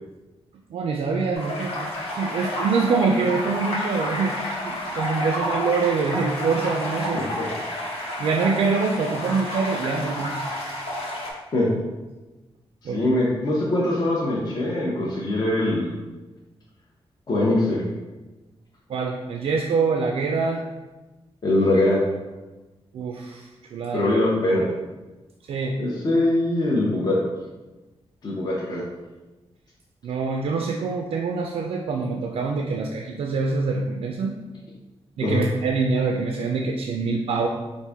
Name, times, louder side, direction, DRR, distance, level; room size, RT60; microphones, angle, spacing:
voice 1, 0.7-1.9 2.1-4.4 4.6-7.2 8.2-10.4 12.8-13.1 18.9-20.6 22.9-24.1 25.5-26.0 30.0-34.3 35.2-37.5, right 4 dB, 75° right, 1 dB, 0.4 m, -25 dB
sound 1, 1.3-11.3, left 1 dB, 80° left, 1.2 m, -30 dB
voice 2, 7.1-7.4 11.5-11.7 12.9-15.9 17.3-17.8 21.4-22.0 23.9-24.7 25.8-27.2 28.2-28.8 35.2-35.4, left 1 dB, 40° left, -5 dB, 0.6 m, -22 dB
4.5 x 2.6 x 3.4 m, 1.1 s
wide cardioid pair, 175°, 10 cm